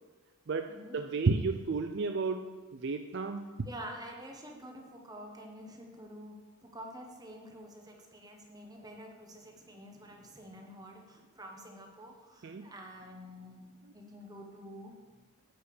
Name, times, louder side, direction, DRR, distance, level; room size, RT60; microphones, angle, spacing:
voice 1, 0.5-3.5 12.4-12.7, right 4 dB, 50° right, 6 dB, 0.4 m, -32 dB
voice 2, 3.6-6.4 6.6-14.9, equal, 15° right, 1 dB, 1.1 m, -48 dB
8.9 x 5.2 x 6.9 m, 1.3 s
head